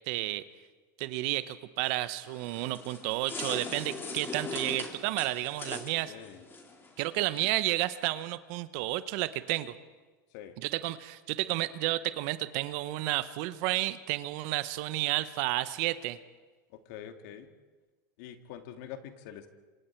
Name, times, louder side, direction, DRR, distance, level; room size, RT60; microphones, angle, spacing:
voice 1, 0.1-0.4 1.0-6.1 7.0-9.7 10.6-16.2, right 17 dB, 55° right, 14 dB, 1.1 m, -31 dB
sound 1, 2.2-7.5, left 3 dB, 20° left, 3.5 m, -41 dB
voice 2, 6.1-6.4 10.3-10.6 16.7-17.5 18.2-19.5, left 10 dB, 60° left, 7 dB, 2.3 m, -45 dB
27.5 x 26.0 x 4.7 m, 1.3 s
hypercardioid pair, 115°, 10 cm